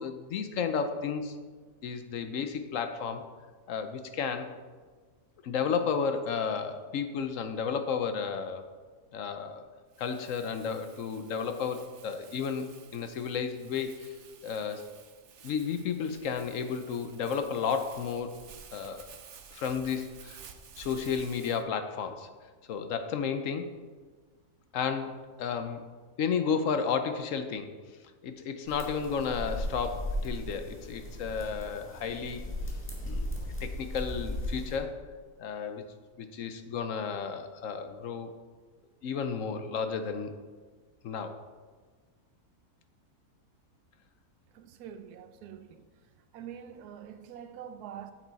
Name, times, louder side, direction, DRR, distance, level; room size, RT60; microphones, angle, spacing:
voice 1, 0.0-1.4 1.8-3.3 3.7-4.5 5.4-8.6 9.1-9.6 10.0-12.6 12.9-14.1 14.4-14.9 15.4-18.3 18.7-19.1 19.5-20.4 20.8-22.3 22.7-23.7 24.7-25.9 26.2-27.7 28.2-32.4 33.0-33.3 33.6-35.0 35.4-35.8 36.2-38.3 39.0-40.3 41.0-41.4, left 6 dB, 65° left, 0.9 m, -32 dB
Crumpling crinkling, 9.9-21.6, right 7 dB, 60° right, 0.9 m, -53 dB
sound 1, 28.7-34.8, equal, 10° left, 1.5 m, -36 dB
voice 2, 44.5-45.9 46.3-48.1, right 9 dB, 85° right, 1.1 m, -45 dB
9.2 x 7.2 x 4.0 m
omnidirectional pair, 1.6 m